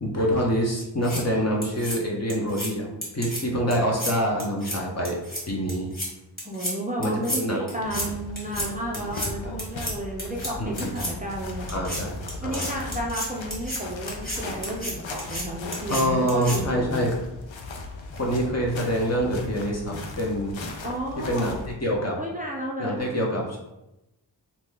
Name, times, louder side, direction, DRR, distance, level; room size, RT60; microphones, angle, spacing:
voice 1, 0.0-2.9 3.1-5.1 5.5-5.9 7.0-7.7 9.0-9.6 10.6-10.9 11.7-12.7 15.9-17.1 18.1-20.6 21.3-21.5 21.8-22.2 22.8-23.6, equal, 35° left, -2 dB, 0.7 m, -26 dB
sound 1, 0.8-1.2 1.6-2.0 2.3-2.7 3.0-3.4 3.7-4.1 4.4-4.8 5.0-5.4 5.7-6.1 6.4-6.7 7.0-7.4 7.7-8.1 8.4-8.7 8.9-9.3 9.6-9.9 10.2-10.5 10.8-11.1 11.7-12.0 12.3-13.8 14.1-14.4 14.6-14.9 15.2-15.4 15.7-16.0 16.3-16.6, equal, 20° left, 1.4 m, -31 dB
voice 2, 6.4-11.8 12.4-17.1 20.8-21.5 22.2-23.0, right 1 dB, 20° right, -3 dB, 0.5 m, -32 dB
sound 2, 7.8-21.7, left 2 dB, 90° left, 0.5 m, -38 dB
2.8 x 2.2 x 3.3 m, 0.93 s
wide cardioid pair, 40°, 44 cm